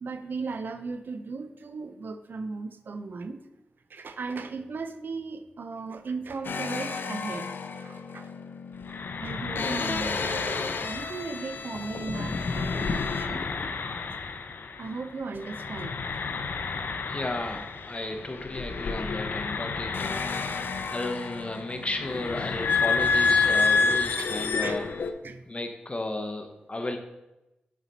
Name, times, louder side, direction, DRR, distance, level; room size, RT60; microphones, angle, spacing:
voice 1, 0.0-3.4 3.9-7.5 7.8-8.3 9.2-13.5 14.8-15.9 24.2-24.8 25.2-25.4, right 4 dB, 70° right, 9 dB, 0.5 m, -37 dB
sound 1, 6.4-15.1 15.4-25.1, left 4 dB, 70° left, 0.5 m, -29 dB
voice 2, 17.1-24.9 25.5-27.0, left 2 dB, 35° left, 6 dB, 1.0 m, -34 dB
7.1 x 4.4 x 4.0 m, 0.97 s
cardioid pair, 45°, 4 cm